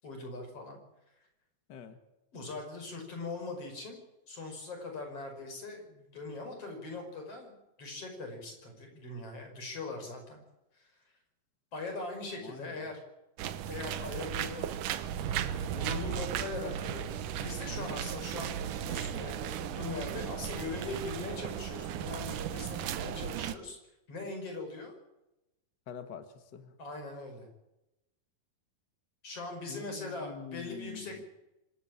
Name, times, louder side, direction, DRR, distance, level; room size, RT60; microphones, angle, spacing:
voice 1, 0.0-0.8 2.3-4.0 4.3-10.4 10.7-10.9 11.7-13.0 13.7-14.7 15.2-23.8 24.1-24.9 26.8-27.5 29.2-31.3, left 3 dB, 35° left, 3 dB, 6.2 m, -41 dB
voice 2, 1.7-2.0 12.4-13.0 25.9-26.7 29.7-31.2, left 6 dB, 80° left, 9 dB, 0.9 m, -46 dB
sound 1, 13.4-23.6, right 10 dB, 70° right, 2.1 m, -36 dB
25.5 x 12.5 x 8.8 m, 0.92 s
omnidirectional pair, 4.6 m